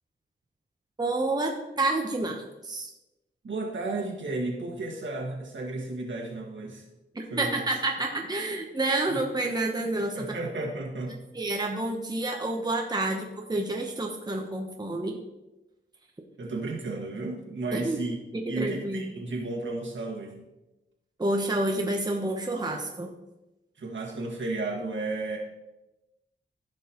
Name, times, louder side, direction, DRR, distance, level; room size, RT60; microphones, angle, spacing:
voice 1, 1.0-2.9 7.1-10.3 11.3-15.2 17.7-18.0 18.3-19.1 21.2-23.1, right 2 dB, 20° right, 1 dB, 1.0 m, -29 dB
voice 2, 3.4-6.8 7.3-7.5 9.1-9.2 10.1-11.2 16.4-18.2 18.5-20.4 23.8-25.4, right 2 dB, 65° right, -1 dB, 1.9 m, -33 dB
14.5 x 5.4 x 3.0 m, 0.99 s
wide cardioid pair, 95°, 21 cm